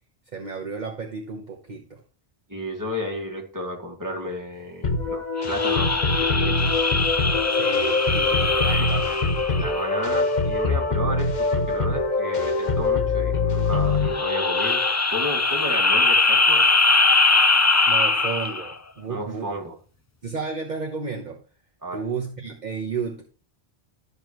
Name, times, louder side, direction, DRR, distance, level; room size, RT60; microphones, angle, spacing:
voice 1, 0.3-2.0 7.5-9.2 9.5-9.7 17.9-19.5 20.2-21.4 21.9-23.2, right 5 dB, 45° right, 1 dB, 1.1 m, -32 dB
voice 2, 2.5-6.7 8.7-8.9 9.6-14.8 15.1-16.6 19.1-19.7 21.8-22.0, equal, 20° right, -1 dB, 2.2 m, -32 dB
sound 1, 4.8-14.9, left 3 dB, 45° left, 1.1 m, -24 dB
sound 2, 5.4-10.2 14.0-18.7, left 3 dB, 20° left, 0.5 m, -22 dB
12.5 x 6.9 x 3.1 m, 0.40 s
omnidirectional pair, 1.1 m